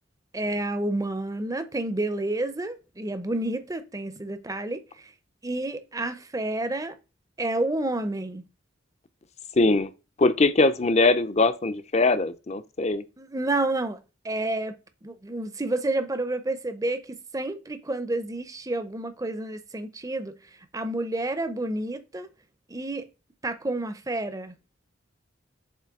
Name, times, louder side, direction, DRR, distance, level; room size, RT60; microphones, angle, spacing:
voice 1, 0.3-5.1 5.4-7.0 7.4-8.5 13.2-14.0 14.2-14.8 15.0-20.3 20.7-22.3 22.7-23.1 23.4-24.5, right 2 dB, 15° right, 0.7 m, -29 dB
voice 2, 9.6-9.9 10.2-13.0, left 3 dB, 35° left, 0.6 m, -21 dB
7.6 x 3.2 x 4.7 m
head